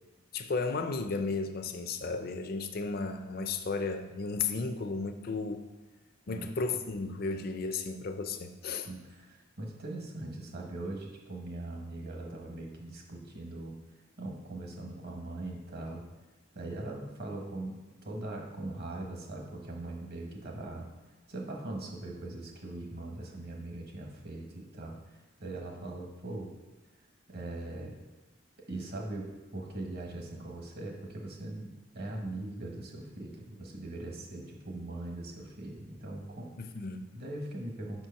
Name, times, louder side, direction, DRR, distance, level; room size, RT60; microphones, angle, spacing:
voice 1, 0.3-5.6 6.3-8.9 36.6-37.1, left 4 dB, 50° left, 7 dB, 0.5 m, -34 dB
voice 2, 6.3-6.8 8.9-13.7 14.2-16.0 16.5-20.9 21.3-26.5 27.3-27.9 28.7-36.5 37.1-38.1, right 2 dB, 55° right, 1 dB, 1.2 m, -41 dB
5.8 x 4.5 x 5.7 m, 1.2 s
head